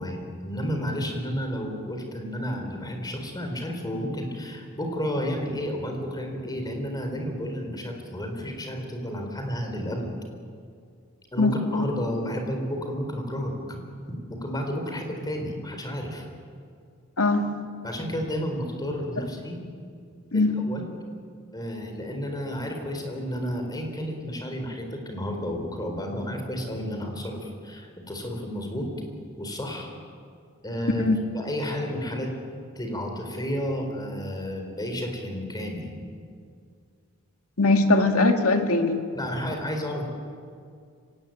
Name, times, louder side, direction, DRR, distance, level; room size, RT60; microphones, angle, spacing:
voice 1, 0.0-10.1 11.3-13.8 14.1-16.2 17.8-19.6 20.3-20.8 21.5-28.9 29.4-29.9 30.6-31.1 31.3-32.3 32.8-35.9 39.1-40.1, equal, 20° left, 3 dB, 4.2 m, -31 dB
voice 2, 11.4-11.9 17.2-17.5 20.3-20.6 31.0-31.2 37.6-39.0, left 2 dB, 85° left, 5 dB, 2.1 m, -21 dB
25.0 x 18.0 x 9.2 m, 2.2 s
head